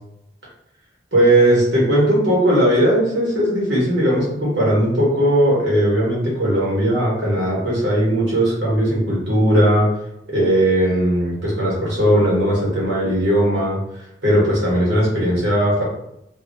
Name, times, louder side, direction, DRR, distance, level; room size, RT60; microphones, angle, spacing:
voice 1, 1.1-9.9 10.3-13.8 14.2-15.8, right 1 dB, 75° right, -5 dB, 1.3 m, -18 dB
2.8 x 2.4 x 2.6 m, 0.82 s
head